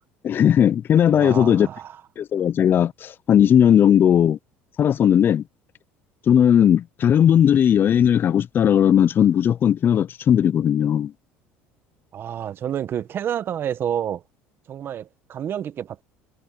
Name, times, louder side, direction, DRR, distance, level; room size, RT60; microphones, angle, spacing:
voice 1, 0.2-1.7 2.2-4.4 4.8-5.4 6.3-11.1, left 9 dB, 40° left, 0.5 m, -17 dB
voice 2, 1.1-2.0 12.1-14.2 14.7-16.0, right 9 dB, 45° right, 1.4 m, -29 dB
supercardioid pair, 90°, 5 cm